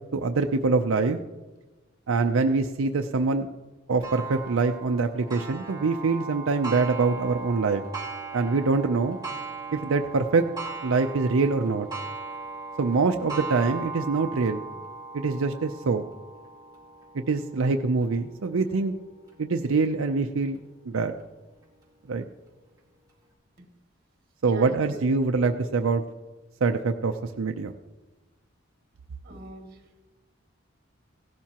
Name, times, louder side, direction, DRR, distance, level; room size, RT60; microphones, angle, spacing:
voice 1, 0.1-1.2 2.1-3.5 3.9-7.8 8.3-9.2 9.7-10.5 10.8-11.9 12.8-14.6 15.1-16.0 17.1-18.9 19.4-20.6 20.8-21.1 22.1-22.2 24.4-26.0 26.6-27.7, right 4 dB, 85° right, 6 dB, 0.5 m, -24 dB
Clock, 4.0-19.3 19.9-20.0 20.6-20.7 21.6-21.7, right 4 dB, 20° right, 1.9 m, -38 dB
voice 2, 24.5-25.3 29.2-29.7, right 2 dB, 45° right, 1 dB, 2.3 m, -42 dB
17.0 x 12.0 x 2.9 m, 1.2 s
head